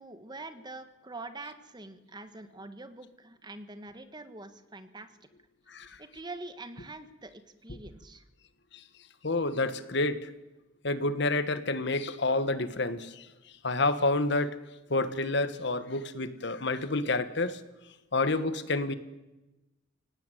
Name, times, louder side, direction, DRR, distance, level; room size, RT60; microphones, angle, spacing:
voice 1, 0.0-5.1 6.0-8.2, right 2 dB, 20° right, 1.4 m, -44 dB
voice 2, 9.2-10.3 10.8-13.3 13.6-14.6 14.9-17.6 18.1-18.9, left 2 dB, 65° left, 1.5 m, -29 dB
24.5 x 18.0 x 9.2 m
head